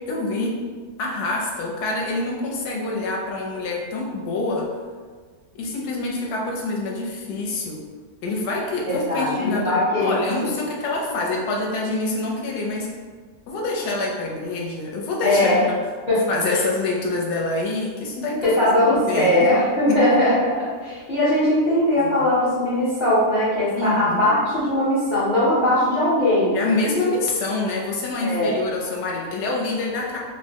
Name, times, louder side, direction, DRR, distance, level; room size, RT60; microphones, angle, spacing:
voice 1, 0.1-0.6 1.0-4.7 5.6-7.8 8.2-12.9 13.5-15.5 15.7-15.8 16.3-18.5 18.9-19.5 19.9-20.2 22.0-22.3 23.8-24.3 26.5-30.2, left 2 dB, 75° left, -2 dB, 1.1 m, -26 dB
voice 2, 8.9-10.5 15.2-15.6 16.1-16.2 16.5-16.6 18.4-20.5 20.8-26.6 28.2-28.6, left 1 dB, 50° left, -10 dB, 0.5 m, -20 dB
3.5 x 2.0 x 2.7 m, 1.5 s
omnidirectional pair, 1.8 m